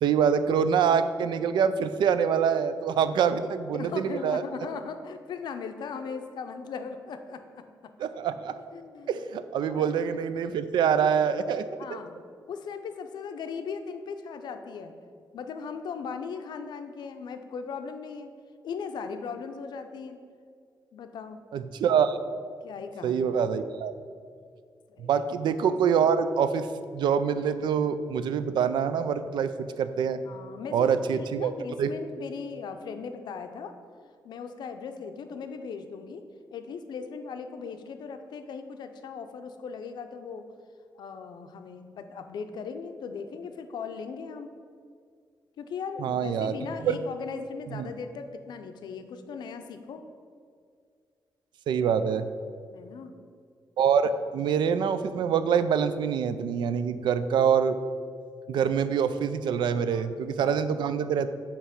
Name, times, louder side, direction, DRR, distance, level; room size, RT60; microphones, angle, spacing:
voice 1, 0.0-4.4 8.0-8.5 9.1-11.7 21.5-22.2 23.0-23.9 25.0-26.7 26.9-30.2 30.7-31.5 31.8-31.9 46.0-46.6 46.8-47.0 47.7-47.9 51.7-52.3 53.8-57.8 58.5-61.3, right 7 dB, 90° right, 12 dB, 0.3 m, -25 dB
voice 2, 3.1-7.6 8.7-9.2 9.6-10.0 11.8-12.1 12.5-14.9 15.3-18.3 18.6-20.2 20.9-21.4 22.6-23.4 24.9-25.3 30.3-33.8 34.2-36.2 36.5-40.4 40.9-44.5 45.6-50.0 52.7-53.1 54.3-54.6 59.9-60.6, left 5 dB, 70° left, 7 dB, 0.5 m, -38 dB
8.2 x 3.0 x 5.8 m, 2.1 s
wide cardioid pair, 160°, 8 cm